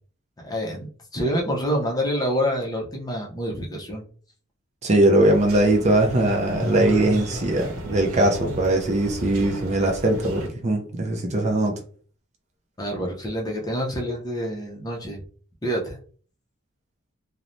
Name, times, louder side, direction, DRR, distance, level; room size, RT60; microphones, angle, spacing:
voice 1, 0.4-4.0 12.8-15.2 15.6-16.0, equal, 20° left, -1 dB, 0.5 m, -27 dB
voice 2, 4.8-11.8, right 1 dB, 30° right, 2 dB, 0.4 m, -21 dB
sound 1, 5.2-10.5, right 1 dB, 65° right, 0.8 m, -33 dB
3.0 x 2.0 x 2.5 m, 0.43 s
head